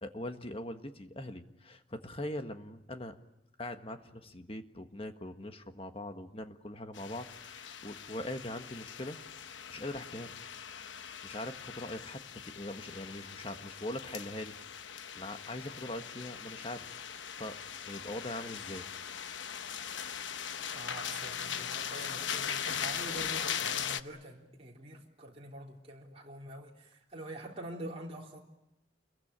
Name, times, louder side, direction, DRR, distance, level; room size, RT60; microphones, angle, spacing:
voice 1, 0.0-3.2 3.6-9.2 9.7-10.4 11.2-14.5 15.1-16.9 17.4-18.9, left 1 dB, 30° left, 7 dB, 1.5 m, -41 dB
sound 1, 6.9-24.0, left 8 dB, 75° left, 1.0 m, -40 dB
voice 2, 20.7-28.4, right 1 dB, 30° right, -2 dB, 3.9 m, -45 dB
28.0 x 22.5 x 8.9 m, 0.87 s
head